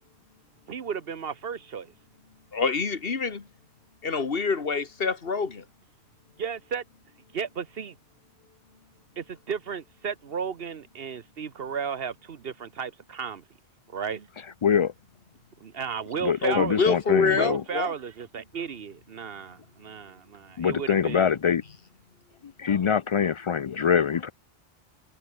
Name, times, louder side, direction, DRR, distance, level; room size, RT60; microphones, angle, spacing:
voice 1, 0.7-1.9 6.4-6.8 7.3-8.0 9.2-13.4 13.9-14.3 15.6-16.9 17.3-21.3, right 6 dB, 65° right, 1.2 m, -34 dB
voice 2, 2.5-3.5 4.0-5.6 16.4-17.9, left 4 dB, 65° left, 1.8 m, -26 dB
voice 3, 14.6-14.9 16.2-17.6 20.6-21.6 22.6-24.3, left 7 dB, 50° left, 0.3 m, -24 dB
omnidirectional pair, 1.1 m